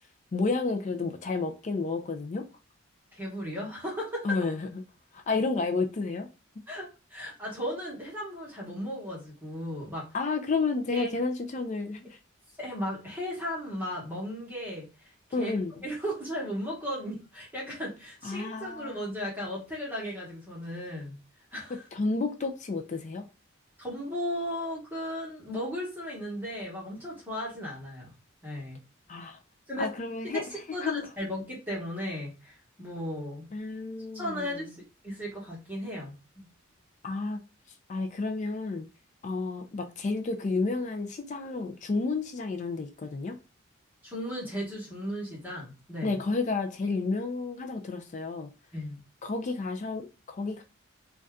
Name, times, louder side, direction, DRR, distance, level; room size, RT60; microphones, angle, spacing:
voice 1, 0.3-2.4 4.2-4.7 5.1-6.3 10.1-12.2 15.3-15.7 18.2-19.1 21.9-23.2 29.1-29.4 29.8-30.4 30.8-31.0 33.5-34.8 37.0-37.4 37.9-38.9 39.2-43.3 46.0-48.5 49.2-50.6, left 3 dB, 35° left, 0.3 m, -31 dB
voice 2, 3.1-4.3 6.7-10.1 10.9-11.2 12.6-15.5 15.8-21.2 21.5-21.9 23.8-28.1 28.4-28.8 29.7-29.9 30.2-33.5 34.1-36.5 44.0-46.2 48.7-49.0, equal, 10° right, 1.1 m, -36 dB
2.6 x 2.2 x 3.5 m
head